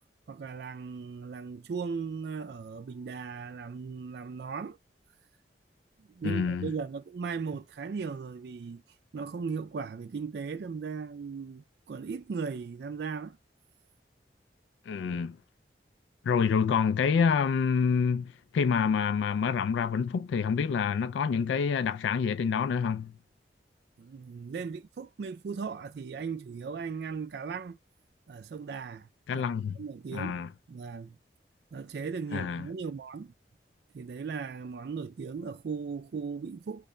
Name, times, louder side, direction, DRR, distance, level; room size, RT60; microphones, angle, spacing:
voice 1, 0.3-4.8 6.0-8.8 9.1-13.4 24.0-27.8 28.3-29.4 29.8-31.2 31.7-33.3 33.9-36.9, right 5 dB, 65° right, 0.3 m, -37 dB
voice 2, 6.2-6.7 14.9-15.4 16.2-23.1 29.3-29.8 30.1-30.5 32.3-32.7, left 6 dB, 90° left, 0.3 m, -27 dB
3.2 x 2.2 x 3.7 m
head